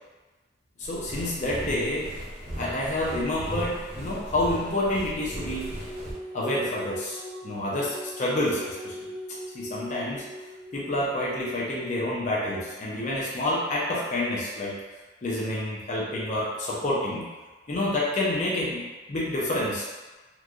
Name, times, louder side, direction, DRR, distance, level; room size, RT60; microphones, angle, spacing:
voice 1, 0.8-2.1 2.5-5.7 6.3-9.1 9.5-10.2 10.7-14.8 15.2-17.3 17.7-19.8, left 1 dB, 45° left, -5 dB, 0.5 m, -28 dB
sound 1, 0.8-6.1, equal, 50° right, 1.1 m, -37 dB
sound 2, 4.1-11.8, equal, 15° right, 0.8 m, -41 dB
3.0 x 2.4 x 2.5 m, 1.2 s
head